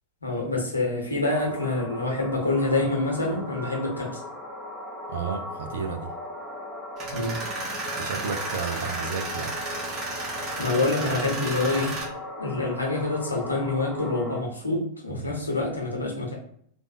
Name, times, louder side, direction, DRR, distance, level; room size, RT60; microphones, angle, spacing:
voice 1, 0.2-4.2 7.1-7.4 10.6-12.0 12.4-16.4, left 2 dB, 80° left, -2 dB, 1.0 m, -26 dB
sound 1, 1.3-14.4, left 1 dB, 10° right, 0.9 m, -38 dB
voice 2, 5.1-6.1 8.0-9.7 15.1-15.4, right 5 dB, 60° right, 8 dB, 0.5 m, -32 dB
Tools, 7.0-12.0, right 3 dB, 30° right, 1.4 m, -33 dB
3.4 x 2.5 x 2.6 m, 0.64 s
figure-of-eight pair, 90°, 0 cm